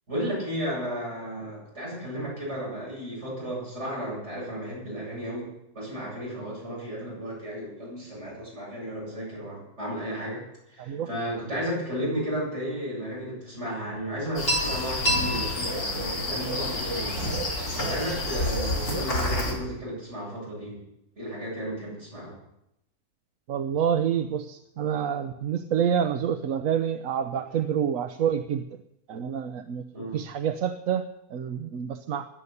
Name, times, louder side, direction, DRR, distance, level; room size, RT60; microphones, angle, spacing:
voice 1, 0.1-5.5 5.7-20.8 21.2-22.3 29.9-30.2, equal, 45° right, -4 dB, 8.2 m, -34 dB
voice 2, 10.8-11.1 23.5-28.6 29.1-29.8 30.1-32.3, right 8 dB, 65° right, 9 dB, 1.1 m, -27 dB
sound 1, 14.3-19.5, left 1 dB, 80° left, 5.1 m, -28 dB
16.5 x 11.0 x 6.8 m, 0.83 s
omnidirectional pair, 1.6 m